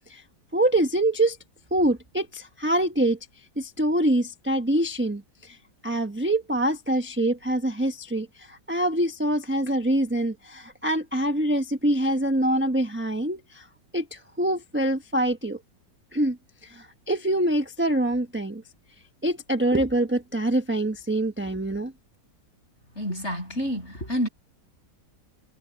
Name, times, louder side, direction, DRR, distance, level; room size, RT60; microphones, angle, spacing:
voice 1, 0.5-1.4 1.7-3.2 3.6-5.6 5.8-13.7 13.9-15.6 16.1-16.4 16.6-18.6 19.2-21.9, right 1 dB, 10° right, 0.9 m, -25 dB
voice 2, 23.0-24.3, equal, 35° left, 8.4 m, -28 dB
omnidirectional pair, 1.9 m